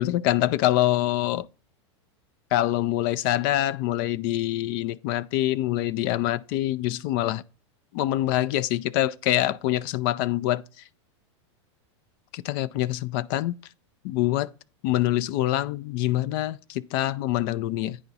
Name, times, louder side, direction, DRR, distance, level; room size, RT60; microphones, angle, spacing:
voice 1, 0.0-1.5 2.5-7.4 7.9-10.8 12.3-13.6 14.0-14.5 14.8-18.0, left 14 dB, 50° left, 0.4 m, -25 dB
10.0 x 4.7 x 4.0 m
supercardioid pair, 130°, 15 cm